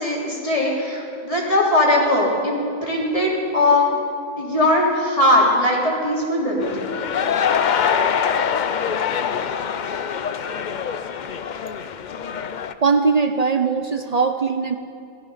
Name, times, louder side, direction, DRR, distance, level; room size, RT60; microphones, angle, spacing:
voice 1, 0.0-3.9 4.4-6.9, left 1 dB, 25° left, -4 dB, 3.2 m, -20 dB
sound 1, 6.6-12.7, left 7 dB, 65° left, 0.4 m, -24 dB
voice 2, 12.8-14.8, right 5 dB, 85° right, 6 dB, 0.3 m, -20 dB
17.5 x 14.0 x 5.7 m, 2.5 s
omnidirectional pair, 1.5 m